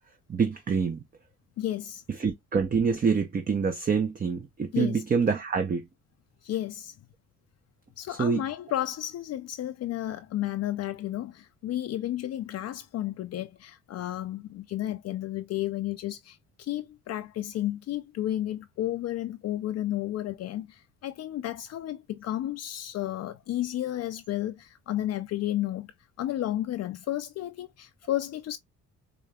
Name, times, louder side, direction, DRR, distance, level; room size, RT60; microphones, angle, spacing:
voice 1, 0.3-1.0 2.2-5.9 8.1-8.4, right 5 dB, 30° right, 0.6 m, -26 dB
voice 2, 1.6-2.0 4.7-5.0 6.4-6.9 8.0-25.9 26.2-28.6, left 13 dB, 55° left, 0.4 m, -32 dB
4.9 x 2.7 x 2.2 m
cardioid pair, 90°, 30 cm